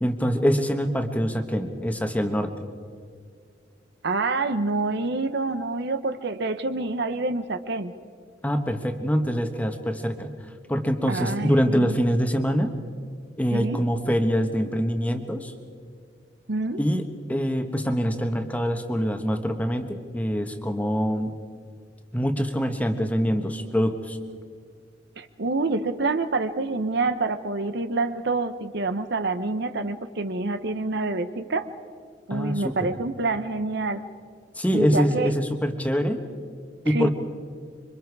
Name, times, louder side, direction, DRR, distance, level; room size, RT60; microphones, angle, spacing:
voice 1, 0.0-2.5 8.4-10.3 10.7-12.7 13.4-15.5 16.8-17.0 17.3-21.4 22.1-24.2 32.3-32.9 34.5-36.2 36.8-37.1, equal, 10° left, 6 dB, 1.3 m, -24 dB
voice 2, 4.0-7.9 11.1-12.0 13.5-13.8 16.5-16.8 25.2-31.7 32.3-34.0 34.7-35.3 36.9-37.1, right 3 dB, 60° right, 10 dB, 0.9 m, -27 dB
26.5 x 24.0 x 4.8 m, 2.1 s
head